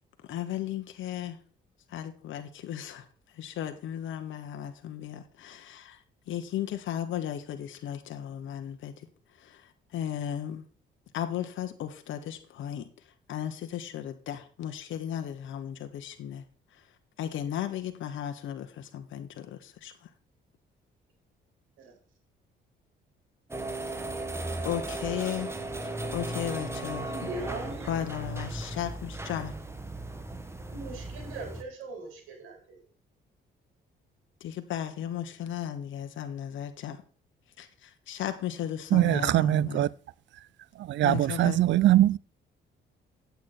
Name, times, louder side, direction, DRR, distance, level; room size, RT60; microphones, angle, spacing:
voice 1, 0.2-1.4 1.9-10.7 11.1-16.4 16.7-20.1 24.6-25.5 26.1-27.3 27.9-29.5 34.4-37.0 37.6-39.9 41.0-41.6, left 10 dB, 75° left, 1.1 m, -35 dB
sound 1, 23.5-31.6, right 2 dB, 15° right, 1.4 m, -36 dB
voice 2, 27.0-27.9 30.7-32.8, right 3 dB, 90° right, 4.3 m, -40 dB
voice 3, 38.9-39.9 40.8-42.2, right 14 dB, 70° right, 0.4 m, -22 dB
8.7 x 8.1 x 4.2 m
cardioid pair, 90°, 20 cm